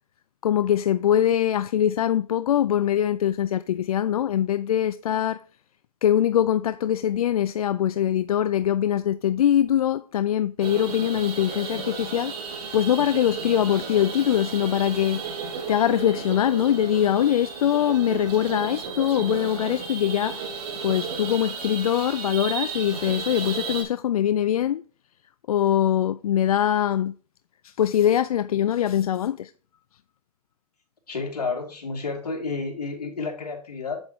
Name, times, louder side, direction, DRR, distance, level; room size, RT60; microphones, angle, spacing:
voice 1, 0.4-5.4 6.0-12.3 12.7-15.2 15.7-20.5 20.8-24.8 25.5-27.1 27.6-29.5, left 10 dB, 65° left, 0.4 m, -23 dB
sound 1, 10.6-23.8, right 5 dB, 40° right, 5.0 m, -34 dB
voice 2, 31.1-34.0, left 4 dB, 80° left, 2.9 m, -30 dB
7.9 x 7.9 x 3.1 m
hypercardioid pair, 135°, 20 cm